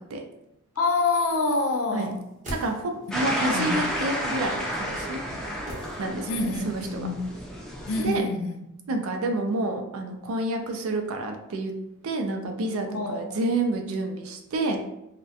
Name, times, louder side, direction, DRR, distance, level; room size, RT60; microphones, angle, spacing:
voice 1, 0.8-2.2 3.5-3.9 6.3-7.2 7.9-8.9 12.9-13.4, left 3 dB, 70° left, 3 dB, 0.4 m, -27 dB
sound 1, 2.1-3.3 5.7-6.6 6.8-6.9, equal, 35° right, 0.7 m, -40 dB
voice 2, 2.5-5.2 6.0-7.1 8.0-8.3 8.9-11.7 12.0-14.8, right 2 dB, 75° right, 4 dB, 0.4 m, -29 dB
sound 2, 3.1-8.2, equal, ahead, 0.4 m, -31 dB
2.3 x 2.1 x 2.6 m, 0.84 s
head